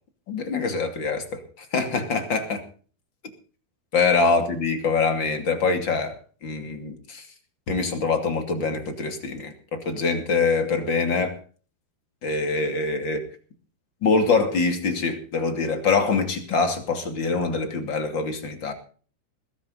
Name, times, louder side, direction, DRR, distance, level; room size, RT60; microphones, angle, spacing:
voice 1, 0.3-2.6 3.9-6.2 6.4-7.2 7.7-11.3 12.2-13.2 14.0-18.7, left 4 dB, 30° left, 7 dB, 2.6 m, -24 dB
21.0 x 12.5 x 4.0 m, 0.41 s
omnidirectional pair, 5.0 m